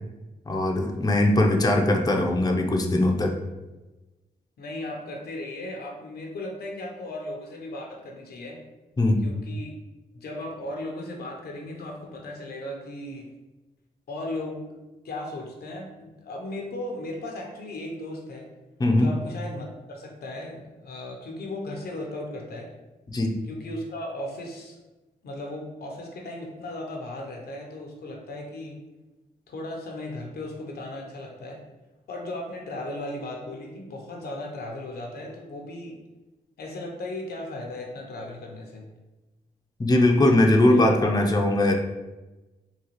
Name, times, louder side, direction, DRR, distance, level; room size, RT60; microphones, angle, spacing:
voice 1, 0.5-3.3 9.0-9.2 18.8-19.1 23.1-23.4 39.8-41.7, left 1 dB, 25° left, 2 dB, 0.6 m, -20 dB
voice 2, 4.6-8.6 9.2-9.7 10.1-13.3 14.1-14.6 15.0-18.5 19.0-22.7 23.5-24.8 25.2-28.8 29.5-31.6 32.1-36.0 36.6-38.9 40.7-41.1, left 1 dB, 75° left, 1 dB, 0.7 m, -36 dB
3.8 x 2.3 x 3.0 m, 1.1 s
supercardioid pair, 45°, 17 cm